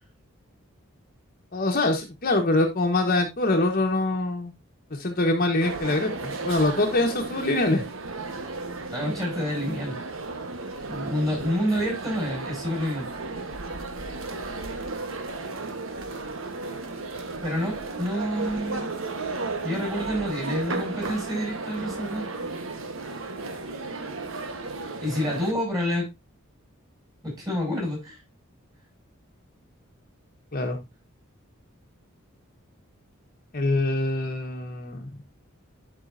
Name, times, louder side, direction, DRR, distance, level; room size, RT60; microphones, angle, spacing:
voice 1, 1.5-4.5 4.9-7.8 30.5-30.8 33.5-35.1, left 2 dB, 45° left, 2 dB, 1.3 m, -24 dB
sound 1, 5.6-25.5, right 3 dB, 70° right, 1.3 m, -34 dB
voice 2, 8.9-10.0 10.9-13.1 17.4-18.9 19.6-22.3 25.0-26.1 27.2-28.2, equal, 15° right, -1 dB, 6.0 m, -28 dB
11.5 x 5.4 x 2.6 m, 0.21 s
head